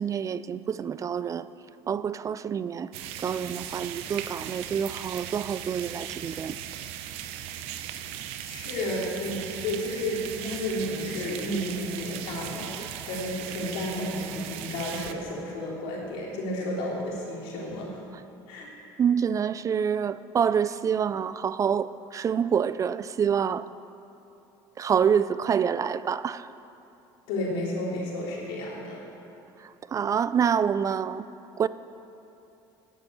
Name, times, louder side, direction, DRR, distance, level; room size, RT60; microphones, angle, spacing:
voice 1, 0.0-1.5 1.9-2.9 3.2-6.6 12.8-12.9 19.0-23.7 24.8-26.5 29.6-31.3 31.6-31.7, right 7 dB, 30° right, 15 dB, 0.4 m, -27 dB
sound 1, 2.9-15.1, right 11 dB, 80° right, 0.7 m, -38 dB
voice 2, 8.5-18.0 18.5-18.7 27.3-29.0, left 1 dB, 85° left, -3 dB, 3.3 m, -32 dB
10.5 x 8.0 x 8.4 m, 2.9 s
supercardioid pair, 105°, 10 cm